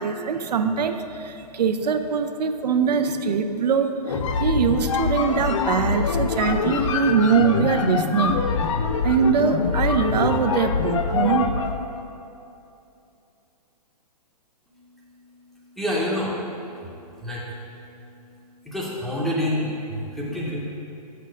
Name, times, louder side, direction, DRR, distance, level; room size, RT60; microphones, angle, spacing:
voice 1, 0.0-3.9 4.4-8.4 9.0-11.5, right 6 dB, 80° right, 8 dB, 0.6 m, -22 dB
sound 1, 4.0-11.8, left 5 dB, 50° left, 0.5 m, -24 dB
voice 2, 15.8-16.3 17.2-17.4 18.7-20.6, left 1 dB, ahead, -6 dB, 0.6 m, -27 dB
6.7 x 5.5 x 5.1 m, 2.7 s
hypercardioid pair, 160°, 21 cm